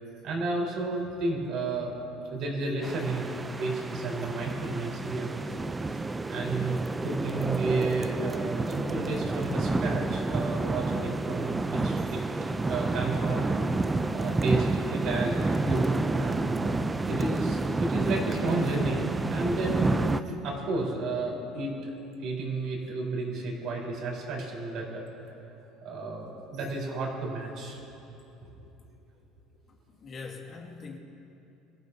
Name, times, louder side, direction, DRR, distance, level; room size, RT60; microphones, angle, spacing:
voice 1, 0.2-1.9 2.3-5.4 5.8-12.2 12.7-13.5 14.1-20.0 20.3-21.9 22.2-25.0 25.8-27.8 28.4-28.5, right 3 dB, 55° right, -1 dB, 4.1 m, -32 dB
sound 1, 2.8-20.2, right 3 dB, 15° right, 0.5 m, -29 dB
voice 2, 29.9-31.0, left 4 dB, 35° left, 0 dB, 2.1 m, -42 dB
25.0 x 15.0 x 2.8 m, 2.9 s
cardioid pair, 125°, 0 cm